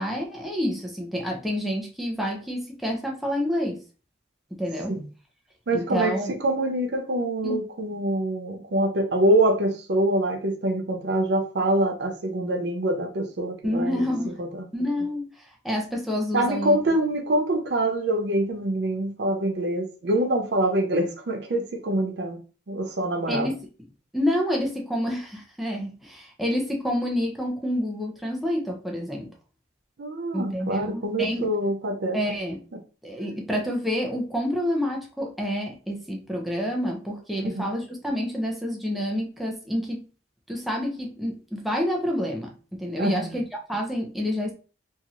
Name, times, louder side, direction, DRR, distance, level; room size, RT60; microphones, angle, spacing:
voice 1, 0.0-3.8 4.5-5.0 5.7-6.3 7.4-7.6 13.6-14.4 14.7-16.8 23.3-23.6 24.1-29.3 30.3-31.5 32.1-32.6 33.0-40.1 40.5-44.5, equal, ahead, 0.4 m, -28 dB
voice 2, 5.7-14.1 14.4-14.7 16.3-22.4 22.7-23.5 30.0-32.2 37.5-37.6 43.0-43.4, right 1 dB, 60° right, 0.5 m, -25 dB
2.9 x 2.7 x 2.4 m
head